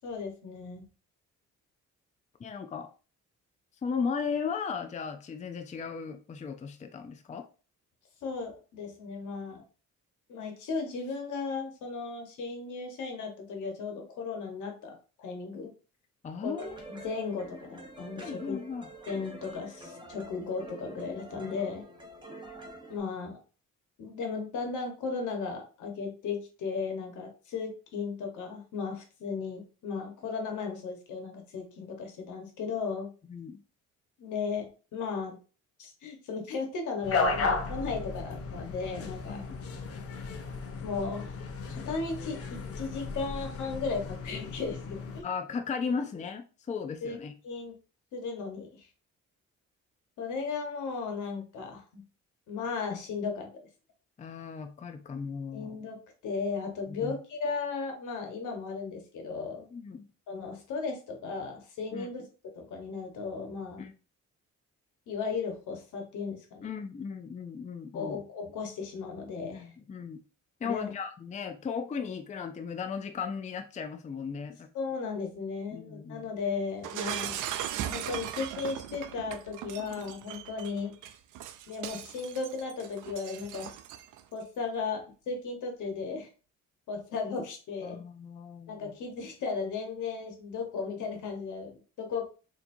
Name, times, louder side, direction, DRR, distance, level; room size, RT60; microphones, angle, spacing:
voice 1, 0.0-0.9 8.2-9.6 10.3-15.7 16.4-18.6 19.1-21.9 22.9-23.4 24.0-33.1 34.2-35.4 35.8-39.4 40.8-41.3 41.7-45.3 45.9-46.0 47.0-47.2 47.4-47.7 48.1-48.9 50.2-52.0 52.5-53.5 55.5-59.7 60.3-62.2 62.5-63.8 65.1-66.7 67.9-69.7 70.6-70.9 74.7-77.4 77.8-80.9 81.7-83.7 84.3-86.3 86.9-88.0 88.7-92.4, left 4 dB, 80° left, 3 dB, 1.2 m, -36 dB
voice 2, 2.4-2.9 3.8-7.4 16.2-16.7 18.2-18.9 33.3-33.6 39.3-39.6 45.2-47.3 54.2-55.8 56.9-57.2 59.7-60.1 61.9-62.1 63.8-63.9 66.6-68.2 69.5-70.2 70.6-74.7 75.7-76.3 87.8-89.0, left 5 dB, 25° left, 6 dB, 0.4 m, -36 dB
sound 1, 16.6-23.0, right 2 dB, 15° right, 1.1 m, -47 dB
sound 2, 37.0-45.2, left 4 dB, 50° left, 0.8 m, -34 dB
Shatter, 76.8-84.2, right 11 dB, 85° right, 0.5 m, -38 dB
4.2 x 2.9 x 2.6 m, 0.36 s
cardioid pair, 90°, 30 cm